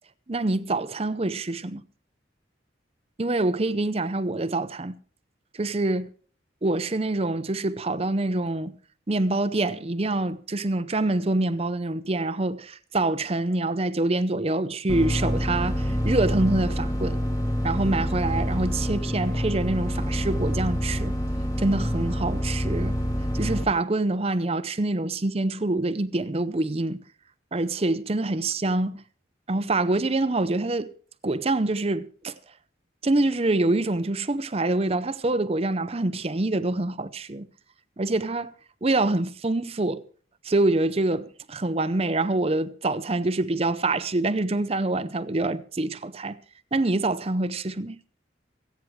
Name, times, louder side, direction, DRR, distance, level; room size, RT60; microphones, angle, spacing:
voice 1, 0.3-1.8 3.2-4.9 5.5-6.1 6.6-8.7 9.1-17.2 17.6-21.2 21.6-23.0 23.3-27.0 27.5-29.0 29.5-30.9 31.2-32.4 33.0-37.5 38.0-38.5 38.8-40.0 40.4-46.4 46.7-48.0, right 2 dB, 30° right, 0.7 m, -25 dB
sound 1, 14.9-23.6, equal, 20° left, 1.5 m, -27 dB
28.0 x 9.4 x 3.2 m
head